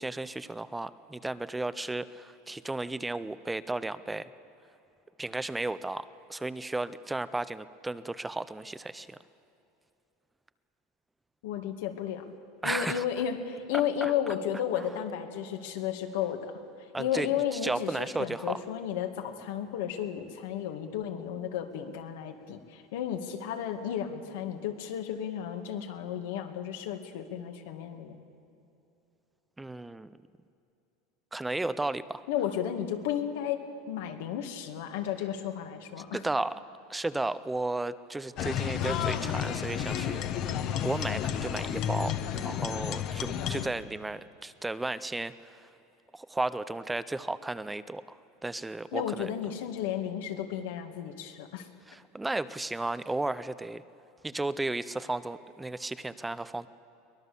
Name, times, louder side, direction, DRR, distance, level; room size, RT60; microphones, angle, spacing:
voice 1, 0.0-4.3 5.2-9.2 12.6-13.0 14.0-14.1 16.9-17.3 17.6-18.6 29.6-30.1 31.3-32.2 36.1-36.6 36.9-45.7 46.1-48.2 48.4-49.3 51.9-53.8 54.2-56.7, right 2 dB, 5° right, 15 dB, 0.4 m, -34 dB
voice 2, 11.4-12.3 12.6-16.5 17.0-28.2 32.3-36.2 48.9-51.7, left 9 dB, 75° left, 5 dB, 2.0 m, -33 dB
sound 1, 38.4-43.7, left 9 dB, 40° left, 1.0 m, -31 dB
23.5 x 19.5 x 6.9 m, 2.7 s
supercardioid pair, 165°, 0 cm